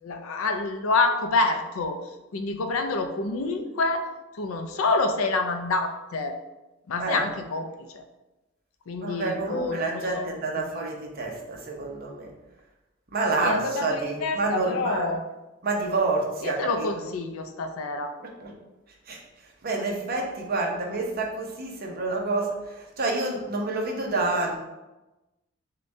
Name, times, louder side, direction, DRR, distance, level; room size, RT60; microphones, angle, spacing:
voice 1, 0.0-2.0 2.3-4.1 4.4-6.3 6.9-7.7 7.9-8.0 8.9-10.9 13.4-15.2 16.4-18.1, left 3 dB, 85° left, 6 dB, 0.5 m, -27 dB
voice 2, 9.0-12.3 13.1-15.1 15.6-16.9 18.4-18.6 19.1-19.2 19.6-24.6, right 3 dB, 45° right, 0 dB, 0.7 m, -28 dB
6.5 x 2.2 x 2.6 m, 1.0 s
head